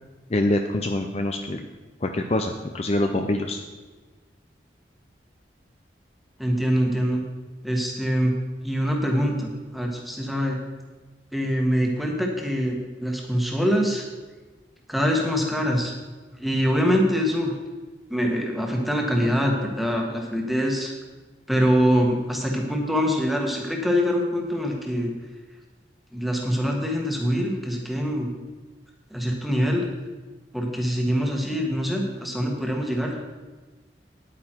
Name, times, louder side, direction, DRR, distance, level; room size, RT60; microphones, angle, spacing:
voice 1, 0.3-1.6 2.0-3.6, left 1 dB, 35° left, 5 dB, 0.5 m, -25 dB
voice 2, 6.4-7.2 7.6-8.3 8.6-10.6 11.3-14.0 14.9-15.9 16.4-17.5 18.1-20.9 21.5-25.1 26.1-28.3 29.1-29.9 30.5-33.2, equal, ahead, 0 dB, 1.4 m, -24 dB
9.6 x 9.0 x 4.5 m, 1.3 s
head